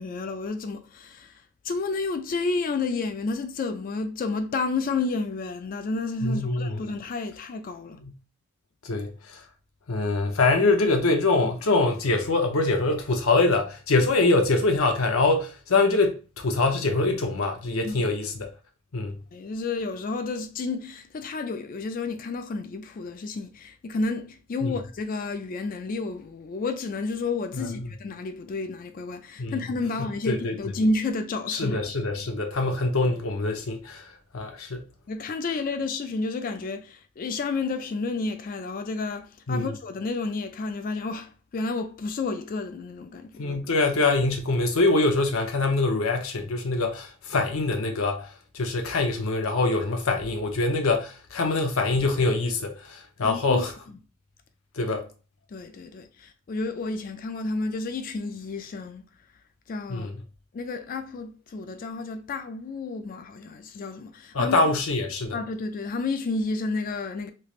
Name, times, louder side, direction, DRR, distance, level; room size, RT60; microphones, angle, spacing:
voice 1, 0.0-8.0 17.8-18.0 19.3-31.8 35.1-43.5 53.2-53.7 55.5-59.1 59.7-60.1 60.5-64.6 65.3-67.3, left 3 dB, 40° left, 0.3 m, -31 dB
voice 2, 6.2-6.8 8.0-8.1 8.8-9.4 9.9-16.2 16.4-18.5 18.9-19.2 24.6-24.7 27.5-27.9 29.4-29.6 30.0-30.6 31.5-34.9 39.5-39.7 43.4-48.3 48.5-53.7 54.8-55.1 59.9-60.1 64.3-65.4, left 3 dB, 75° left, 0.7 m, -24 dB
3.2 x 3.0 x 2.4 m
head